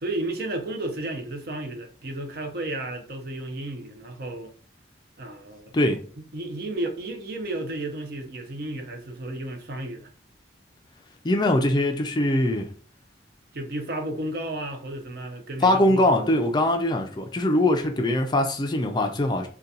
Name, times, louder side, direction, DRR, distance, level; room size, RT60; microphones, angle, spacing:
voice 1, 0.0-4.5 5.2-5.7 6.3-10.1 13.5-16.2, right 1 dB, 50° right, 0.6 m, -33 dB
voice 2, 11.2-12.7 15.6-19.5, left 1 dB, 20° left, 0.3 m, -22 dB
3.8 x 2.2 x 2.7 m
head